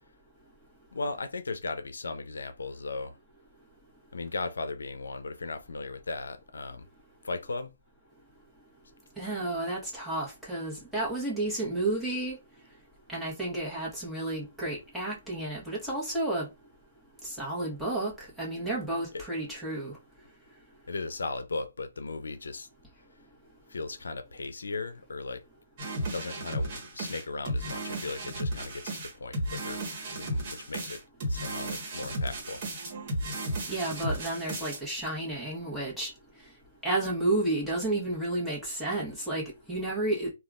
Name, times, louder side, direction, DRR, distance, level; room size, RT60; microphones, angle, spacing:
voice 1, 0.9-3.2 4.1-6.9 7.2-7.7 19.1-19.2 20.9-22.7 23.7-25.4 26.1-29.8 30.1-31.0 31.3-32.6, left 3 dB, 85° left, 0.5 m, -37 dB
voice 2, 9.2-12.4 13.1-16.5 17.2-18.1 18.4-19.9 33.7-36.1 36.8-40.3, right 2 dB, 5° right, 1.2 m, -31 dB
sound 1, 25.8-34.8, right 1 dB, 40° right, 1.3 m, -34 dB
3.4 x 2.3 x 2.4 m
hypercardioid pair, 145°, 0 cm